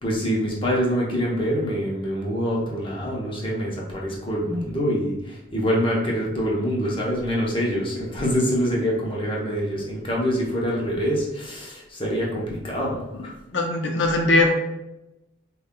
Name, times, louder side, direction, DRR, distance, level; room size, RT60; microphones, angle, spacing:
voice 1, 0.0-13.3, equal, 25° left, -3 dB, 0.8 m, -25 dB
voice 2, 13.5-14.5, left 2 dB, 60° left, 3 dB, 0.6 m, -20 dB
5.4 x 2.3 x 2.2 m, 0.93 s
head